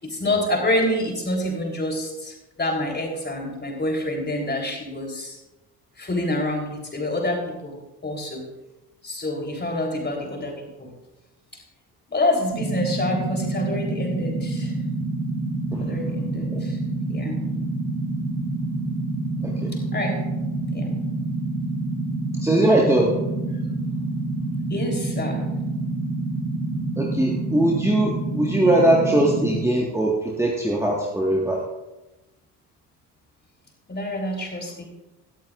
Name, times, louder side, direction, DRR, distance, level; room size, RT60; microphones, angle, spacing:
voice 1, 0.0-5.4 6.0-7.8 8.0-8.5 9.0-10.9 12.1-14.7 15.8-16.8 17.1-17.4 19.9-20.2 20.7-21.0 24.7-25.4 33.9-34.9, left 1 dB, 20° left, 1 dB, 3.7 m, -27 dB
sound 1, 12.5-29.6, right 2 dB, 80° right, 4.9 m, -27 dB
voice 2, 22.4-23.2 27.0-31.6, right 1 dB, 5° right, -2 dB, 1.7 m, -21 dB
18.0 x 13.5 x 2.6 m, 1.0 s
figure-of-eight pair, 45°, 46 cm